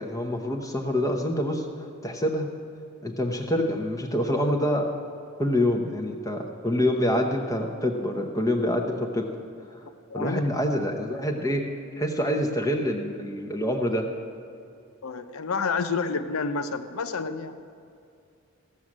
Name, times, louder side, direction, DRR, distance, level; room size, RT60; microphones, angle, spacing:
voice 1, 0.0-2.5 3.0-4.9 5.4-9.3 9.8-9.9 10.1-11.6 11.9-14.1, left 1 dB, 15° left, 2 dB, 0.9 m, -26 dB
voice 2, 10.1-10.5 15.0-17.6, left 4 dB, 85° left, 10 dB, 0.7 m, -29 dB
16.0 x 6.4 x 7.3 m, 2.5 s
head